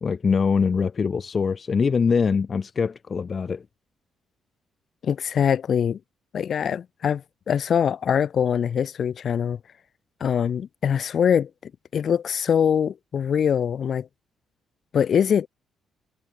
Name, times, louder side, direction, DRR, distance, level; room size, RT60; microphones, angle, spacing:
voice 1, 0.0-3.6, left 5 dB, 40° left, 1.8 m, -23 dB
voice 2, 5.0-6.0 6.3-7.2 7.5-9.6 10.2-14.1 14.9-15.5, left 8 dB, 55° left, 2.5 m, -23 dB
cardioid pair, 90°, 0 cm